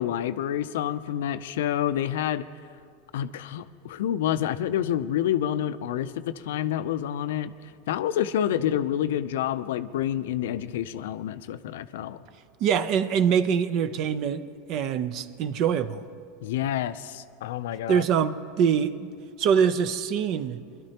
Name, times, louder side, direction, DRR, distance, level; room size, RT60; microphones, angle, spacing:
voice 1, 0.0-2.4 3.1-7.5 7.9-12.2 16.4-18.0, left 11 dB, 75° left, 13 dB, 0.4 m, -28 dB
voice 2, 12.6-16.0 17.9-19.1 19.4-20.6, right 7 dB, 55° right, 13 dB, 0.6 m, -24 dB
21.5 x 12.5 x 2.9 m, 2.2 s
hypercardioid pair, 105°, 0 cm